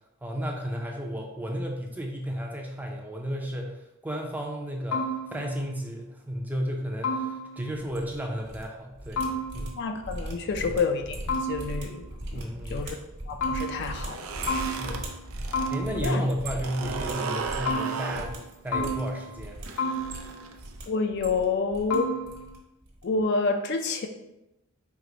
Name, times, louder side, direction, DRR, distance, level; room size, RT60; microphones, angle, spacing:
voice 1, 0.2-5.0 5.3-9.2 9.5-9.8 12.3-12.8 14.8-15.0 15.7-18.4 18.6-19.6, equal, 10° right, 0 dB, 0.4 m, -33 dB
sound 1, 4.9-5.7 7.0-7.8 9.2-9.9 11.3-12.1 13.4-14.2 14.5-15.3 15.5-16.3 17.6-18.4 18.7-19.5 19.8-20.6 21.9-22.5, left 1 dB, 90° left, 0.8 m, -32 dB
sound 2, 7.8-8.6 8.9-17.8 18.1-18.4 18.7-19.7 20.0-20.8 21.1-22.0 22.2-22.6 22.8-23.0, right 1 dB, 50° right, 1.2 m, -38 dB
voice 2, 9.7-12.0 12.3-12.4 12.7-13.0 13.3-14.5 14.9-15.0 15.9-16.3 20.9-22.1 23.0-24.1, left 4 dB, 55° left, 6 dB, 0.3 m, -28 dB
sound 3, 13.8-15.8 16.1-20.9, right 4 dB, 85° right, 0.5 m, -35 dB
4.5 x 2.1 x 3.8 m, 0.89 s
head